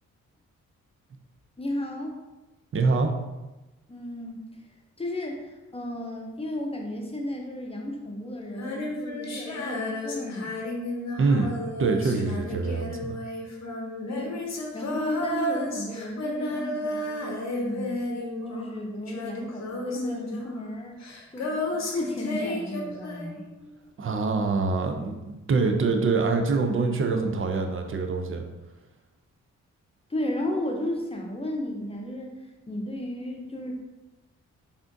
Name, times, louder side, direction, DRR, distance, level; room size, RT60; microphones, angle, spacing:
voice 1, 1.6-2.2 3.9-4.4 5.0-10.6 14.1-18.0 18.5-21.0 21.3-23.5 30.1-32.4 32.7-33.7, left 1 dB, 15° left, 1 dB, 0.7 m, -34 dB
voice 2, 2.7-3.1 11.2-11.5 11.8-13.2 24.0-28.4, right 4 dB, 40° right, 5 dB, 0.5 m, -25 dB
Female singing, 8.5-18.8 19.1-23.5, left 1 dB, 50° left, 0.8 m, -32 dB
3.4 x 2.5 x 2.6 m, 1.1 s
supercardioid pair, 45°, 34 cm